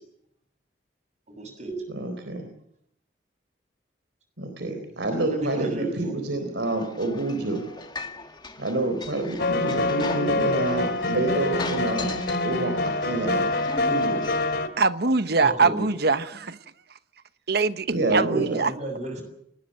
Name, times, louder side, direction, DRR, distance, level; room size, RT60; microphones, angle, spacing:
voice 1, 1.3-1.7 5.2-6.1 15.4-15.9 18.3-19.2, right 1 dB, 40° right, 7.6 m, -34 dB
voice 2, 1.9-2.5 4.4-7.6 8.6-13.5 13.9-14.3 17.9-18.6, right 2 dB, 75° right, 3.9 m, -28 dB
sound 1, 6.6-14.6, left 3 dB, 25° left, 1.8 m, -39 dB
sound 2, 9.4-14.7, left 2 dB, 65° left, 2.6 m, -26 dB
voice 3, 14.8-16.6 17.5-18.7, right 4 dB, 60° right, 1.0 m, -23 dB
29.0 x 20.0 x 6.6 m
head